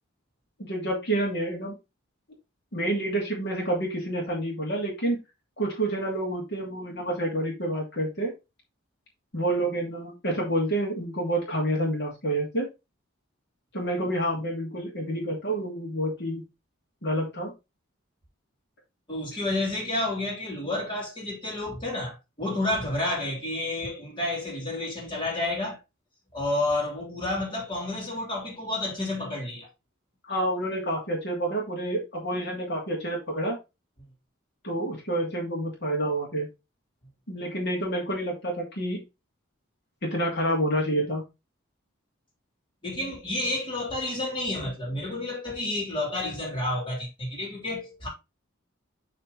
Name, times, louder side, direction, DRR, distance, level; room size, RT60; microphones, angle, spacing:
voice 1, 0.6-1.7 2.7-5.2 5.6-8.3 9.3-12.7 13.7-16.4 17.0-17.5 30.3-33.6 34.6-36.5 37.3-39.0 40.0-41.2, right 1 dB, 55° left, 2.6 m, -28 dB
voice 2, 19.1-25.8 26.3-29.7 42.8-48.1, left 2 dB, 25° left, 3.1 m, -30 dB
7.4 x 4.3 x 4.0 m
head